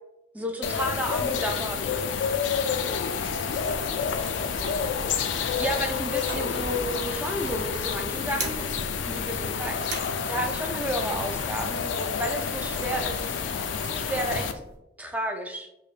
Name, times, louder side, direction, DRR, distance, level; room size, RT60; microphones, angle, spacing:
voice 1, 0.3-2.4 3.6-4.0 5.6-13.3 13.9-14.5 15.0-15.7, equal, 10° right, 4 dB, 0.3 m, -32 dB
sound 1, 0.6-14.5, left 6 dB, 80° left, 0.3 m, -29 dB
sound 2, 3.2-14.8, right 2 dB, 65° right, 0.7 m, -41 dB
4.8 x 2.1 x 2.4 m, 0.90 s
head